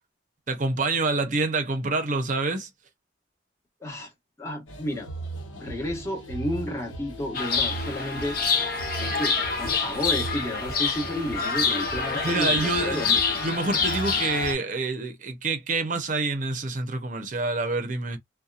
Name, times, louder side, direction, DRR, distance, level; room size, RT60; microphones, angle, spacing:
voice 1, 0.5-2.7 12.2-13.1 13.3-18.2, right 3 dB, 40° right, 0.6 m, -27 dB
voice 2, 4.4-5.1 5.5-8.4 9.0-13.2, left 1 dB, 15° left, 1.0 m, -32 dB
sound 1, 4.7-14.5, right 1 dB, 90° left, 0.9 m, -38 dB
Chirp tweet, 7.3-14.5, left 5 dB, 45° left, 0.7 m, -27 dB
Wind instrument woodwind instrument, 9.1-13.6, right 3 dB, 10° right, 0.8 m, -43 dB
2.8 x 2.2 x 2.4 m
head